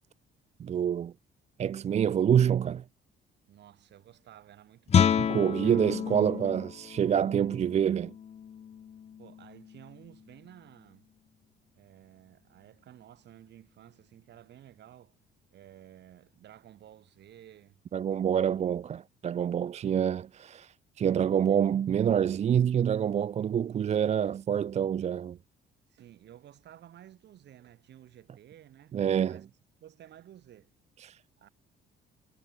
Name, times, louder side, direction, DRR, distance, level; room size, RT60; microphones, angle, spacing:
voice 1, 0.6-1.1 1.6-2.8 5.3-8.1 17.9-25.4 28.9-29.4 31.0-31.2, right 9 dB, 35° right, 0.4 m, -27 dB
voice 2, 3.4-5.3 5.6-5.8 9.2-11.1 11.8-15.2 15.5-17.8 25.9-29.0 29.3-29.5 29.8-30.8 31.4-31.5, right 11 dB, 65° right, 4.6 m, -53 dB
Guitar, 4.9-10.4, left 8 dB, 35° left, 0.5 m, -30 dB
cardioid pair, 145°, 20 cm